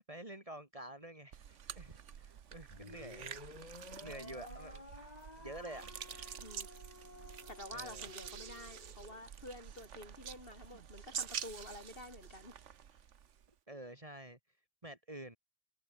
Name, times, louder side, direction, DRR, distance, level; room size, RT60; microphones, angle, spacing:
voice 1, 0.0-3.4 4.0-4.8 5.4-6.4 7.7-8.1 13.7-14.4 14.8-15.4, right 1 dB, 30° right, 3.6 m, -49 dB
sound 1, 1.3-13.5, right 8 dB, 80° right, 1.4 m, -48 dB
sound 2, 2.7-9.2, left 2 dB, 35° left, 2.8 m, -53 dB
voice 2, 6.4-6.7 7.5-12.6, left 1 dB, 50° left, 8.1 m, -50 dB
omnidirectional pair, 1.2 m